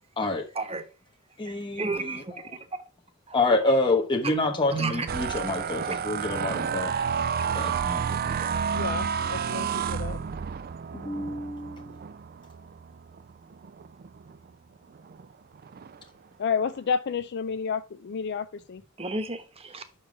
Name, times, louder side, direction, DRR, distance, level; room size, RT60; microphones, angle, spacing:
voice 1, 0.2-0.5 1.4-2.5 3.3-6.9 7.5-8.5 10.9-12.0, left 2 dB, 25° left, 1.0 m, -28 dB
voice 2, 1.5-2.4 3.3-3.4 4.7-5.1 6.5-6.6 19.0-20.0, right 3 dB, 30° right, 1.2 m, -32 dB
sound 1, 5.1-14.4 14.9-15.2 15.6-16.0, right 7 dB, 45° right, 0.4 m, -31 dB
voice 3, 8.7-10.2 16.4-18.8, left 6 dB, 55° left, 0.4 m, -30 dB
6.3 x 5.6 x 4.9 m
head